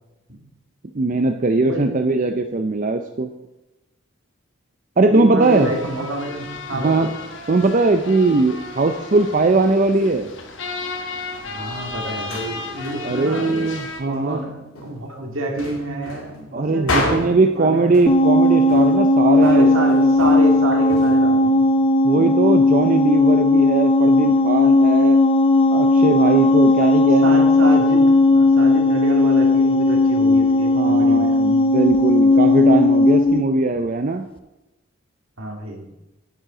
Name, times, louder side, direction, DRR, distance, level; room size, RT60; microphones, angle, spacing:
voice 1, 0.9-3.3 5.0-5.7 6.7-7.1 7.5-10.3 13.0-14.4 16.5-20.1 22.0-25.2 25.7-27.5 30.7-34.2, right 3 dB, 35° right, 6 dB, 0.5 m, -20 dB
voice 2, 1.6-2.0 5.1-7.1 11.5-13.5 14.0-17.9 19.4-21.7 26.8-27.0 27.2-31.4 35.4-35.9, right 1 dB, 70° right, 2 dB, 2.1 m, -28 dB
sound 1, 5.4-14.0, left 3 dB, 60° left, 1.4 m, -34 dB
sound 2, 12.1-13.1 13.8-14.4 14.7-15.1 15.6-17.6 17.9-18.4 18.7-19.1 19.4-21.2, left 2 dB, 90° left, 2.2 m, -30 dB
sound 3, 18.1-33.4, left 2 dB, 25° left, 0.5 m, -16 dB
9.2 x 8.9 x 5.0 m, 0.99 s
head